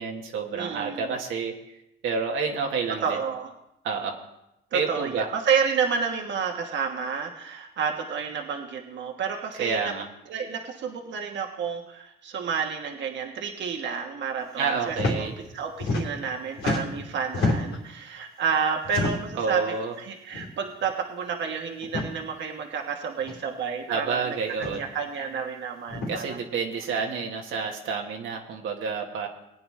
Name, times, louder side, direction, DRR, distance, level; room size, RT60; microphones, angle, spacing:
voice 1, 0.0-1.7 2.0-3.2 3.8-4.2 4.7-5.3 9.6-10.0 14.6-15.3 19.4-19.9 23.9-24.8 26.1-29.3, right 5 dB, 85° right, 1 dB, 1.4 m, -29 dB
voice 2, 0.5-1.1 3.0-3.5 4.7-9.9 10.3-26.4, right 6 dB, 65° right, 3 dB, 1.3 m, -30 dB
sound 1, 14.9-15.2 15.5-16.3 16.6-17.8 18.8-19.4 20.3-20.5 20.8-20.9 21.8-22.1 23.2-23.3 24.5-24.8 25.9-26.1, left 2 dB, 80° left, 2.9 m, -28 dB
19.5 x 9.0 x 3.2 m, 0.86 s
cardioid pair, 90°, 20 cm